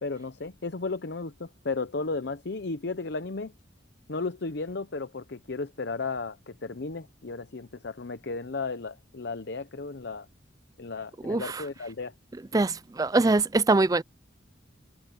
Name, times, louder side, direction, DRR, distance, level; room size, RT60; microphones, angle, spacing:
voice 1, 0.0-3.5 4.1-10.3 10.8-12.1, left 3 dB, 60° left, 0.8 m, -34 dB
voice 2, 11.2-11.6 12.5-14.0, right 3 dB, 20° right, 0.4 m, -23 dB
head